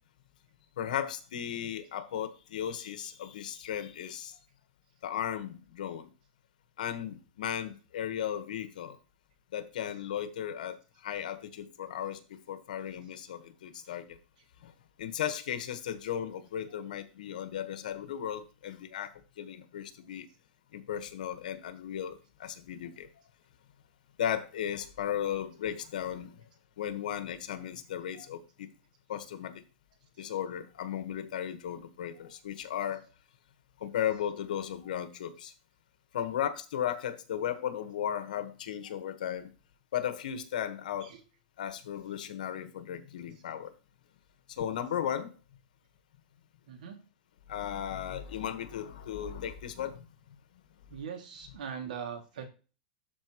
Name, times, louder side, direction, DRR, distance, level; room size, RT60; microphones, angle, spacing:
voice 1, 0.8-4.4 5.0-6.1 6.8-9.0 9.5-14.2 14.6-14.7 15.0-19.1 19.4-20.3 20.7-23.1 24.2-26.4 26.8-28.7 29.1-29.6 30.2-33.1 33.8-35.5 36.1-39.5 39.9-41.1 41.6-43.7 44.5-45.3 47.5-50.0, left 9 dB, 80° left, 1.4 m, -36 dB
voice 2, 46.7-47.0 50.9-52.5, right 7 dB, 80° right, 2.4 m, -41 dB
12.5 x 4.4 x 3.1 m
supercardioid pair, 160°, 4 cm